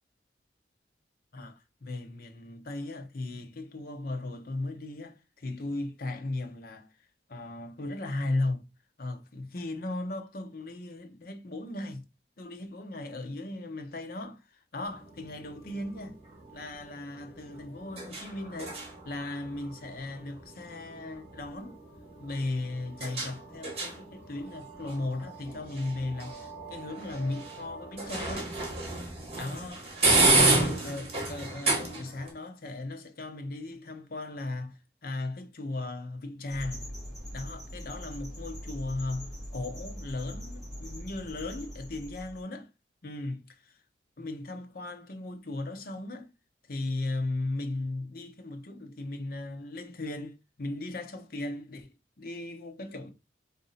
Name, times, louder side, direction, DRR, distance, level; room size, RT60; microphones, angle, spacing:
voice 1, 1.3-6.9 7.3-8.6 9.0-12.0 12.4-16.2 16.5-18.8 19.0-21.8 22.2-28.5 29.4-36.9 37.3-42.7 43.0-43.8 44.2-46.3 46.7-51.9 52.2-53.1, left 2 dB, 55° left, 0.7 m, -36 dB
sound 1, 14.9-32.3, right 2 dB, 35° right, 1.4 m, -32 dB
sound 2, 36.5-42.4, equal, ahead, 1.9 m, -42 dB
3.9 x 2.7 x 3.9 m
head